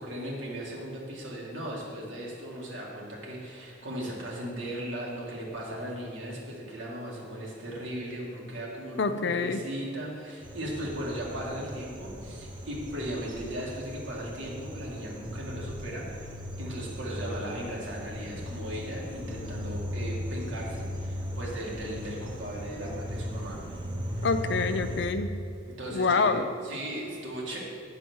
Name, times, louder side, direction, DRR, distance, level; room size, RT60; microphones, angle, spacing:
voice 1, 0.0-23.6 25.8-27.6, right 1 dB, 80° right, -4 dB, 2.2 m, -37 dB
voice 2, 9.0-9.7 24.2-25.4 25.9-26.5, left 4 dB, 65° left, 10 dB, 0.5 m, -26 dB
sound 1, 10.4-25.1, equal, 25° right, 0.9 m, -38 dB
9.2 x 4.8 x 6.3 m, 2.7 s
head